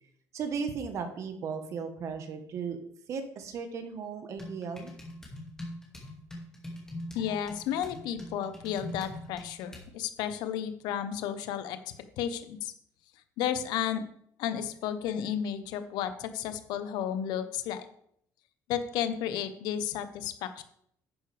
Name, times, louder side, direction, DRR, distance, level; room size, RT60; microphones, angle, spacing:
voice 1, 0.3-2.8 3.1-4.9, right 5 dB, 45° right, 7 dB, 1.3 m, -36 dB
sound 1, 4.4-9.9, left 1 dB, 10° left, 2.3 m, -43 dB
voice 2, 7.1-11.8 12.2-12.7 13.4-14.1 14.4-17.8 18.7-20.6, left 9 dB, 85° left, 10 dB, 1.0 m, -32 dB
11.0 x 9.6 x 3.5 m, 0.68 s
cardioid pair, 165°, 7 cm